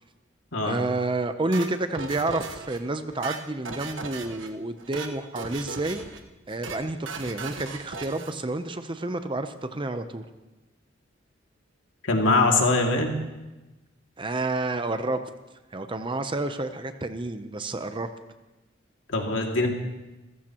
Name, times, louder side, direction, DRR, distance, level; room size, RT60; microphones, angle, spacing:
voice 1, 0.6-6.0 6.5-10.2 14.2-15.2 15.7-18.1, right 2 dB, 25° right, 9 dB, 0.7 m, -29 dB
sound 1, 1.5-2.8 3.1-4.5 4.8-5.1 5.4-6.2 6.5-6.8 7.1-8.3, right 4 dB, 70° right, 1.2 m, -37 dB
voice 2, 12.0-13.2 19.1-19.7, left 2 dB, 75° left, 1 dB, 2.4 m, -22 dB
28.0 x 15.0 x 3.0 m, 1.1 s
head